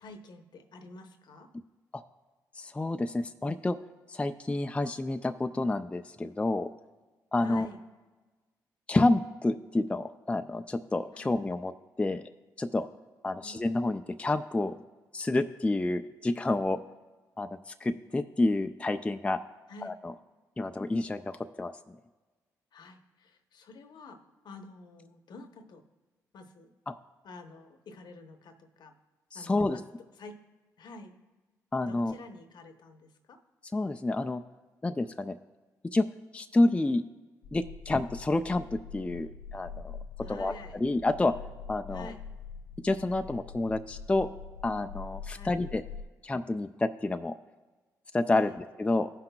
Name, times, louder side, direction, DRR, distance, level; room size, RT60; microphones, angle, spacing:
voice 1, 0.0-1.5 7.4-7.8 11.1-11.3 13.4-13.6 19.7-20.0 22.7-25.8 26.3-26.7 27.2-28.9 29.3-29.8 30.2-30.4 30.8-31.1 31.9-33.4 40.2-40.8 41.9-42.2 45.3-45.6 48.4-48.6, left 3 dB, 65° left, 6 dB, 0.9 m, -48 dB
voice 2, 2.5-3.8 4.1-6.7 7.3-7.7 8.9-11.7 12.0-12.2 12.6-12.9 13.2-14.7 15.1-16.8 17.4-19.4 19.8-20.1 20.6-21.8 26.9-27.0 29.3-29.8 31.7-32.1 33.7-34.4 34.8-35.4 35.9-36.1 36.3-37.0 37.5-40.0 40.3-41.3 41.7-42.1 42.8-44.3 44.6-45.8 46.2-47.3 48.1-49.1, left 2 dB, 15° left, 7 dB, 0.4 m, -29 dB
sound 1, 37.4-46.0, left 6 dB, 85° left, 0.4 m, -44 dB
16.5 x 5.7 x 2.3 m, 1.3 s
supercardioid pair, 55°, 8 cm